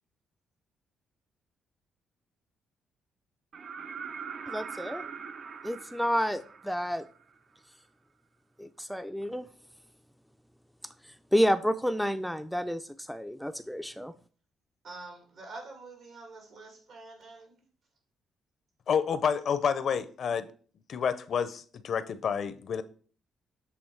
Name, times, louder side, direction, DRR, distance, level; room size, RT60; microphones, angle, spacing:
sound 1, 3.5-7.3 9.2-9.3, right 6 dB, 55° right, 0.5 m, -42 dB
voice 1, 4.5-5.0 5.6-7.0 8.6-9.5 11.3-12.8 13.1-14.1, equal, ahead, 0.4 m, -29 dB
voice 2, 14.8-17.6, right 3 dB, 70° right, 2.3 m, -46 dB
voice 3, 18.9-20.5 20.9-22.8, left 7 dB, 60° left, 0.6 m, -29 dB
7.7 x 3.5 x 4.6 m
cardioid pair, 90°, 0 cm